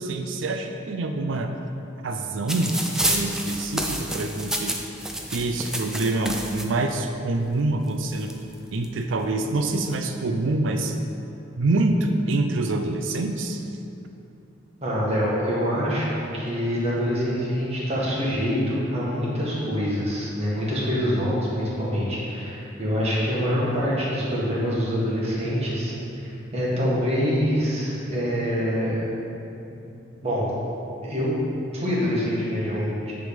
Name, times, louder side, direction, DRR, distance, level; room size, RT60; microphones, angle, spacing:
voice 1, 0.0-1.5 2.0-2.7 3.0-4.7 5.3-8.3 8.7-11.0 11.6-13.6, right 2 dB, 70° right, 5 dB, 0.5 m, -26 dB
sound 1, 2.5-6.6 7.6-7.7 7.9-8.9 9.6-9.9, right 1 dB, 5° right, 0.4 m, -29 dB
voice 2, 14.8-29.2 30.2-30.4 31.0-31.3 31.7-33.1, equal, 35° right, -7 dB, 1.7 m, -25 dB
9.5 x 3.6 x 5.0 m, 2.8 s
head